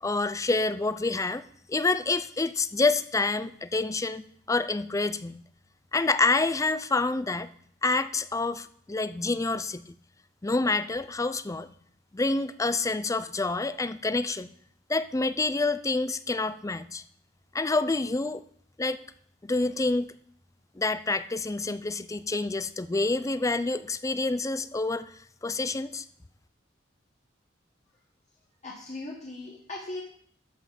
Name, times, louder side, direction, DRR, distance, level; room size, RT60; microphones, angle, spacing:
voice 1, 0.0-1.4 1.7-5.4 5.9-7.5 7.8-10.0 10.4-11.7 12.1-14.5 14.9-17.0 17.5-18.4 18.8-19.0 19.4-20.1 20.8-25.1 25.4-26.0, left 3 dB, 15° left, 13 dB, 0.5 m, -27 dB
voice 2, 28.6-30.0, left 2 dB, 40° left, -2 dB, 1.6 m, -38 dB
13.0 x 5.7 x 5.9 m, 0.62 s
head